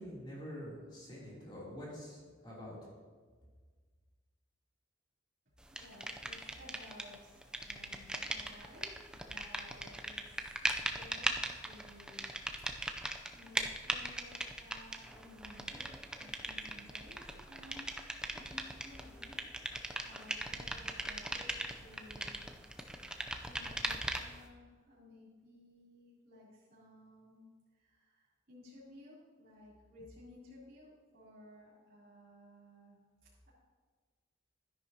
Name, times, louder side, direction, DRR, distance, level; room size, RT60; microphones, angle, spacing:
voice 1, 0.0-2.8, equal, 25° left, -6 dB, 3.0 m, -46 dB
voice 2, 5.7-8.9 9.2-10.6 10.9-12.3 13.3-15.9 16.2-17.9 18.3-22.5 22.9-27.5 27.7-33.5, left 1 dB, 50° right, -10 dB, 3.4 m, -57 dB
sound 1, 5.8-7.2 7.4-24.4, right 1 dB, 5° right, 0.5 m, -39 dB
12.5 x 10.5 x 2.8 m, 1.5 s
head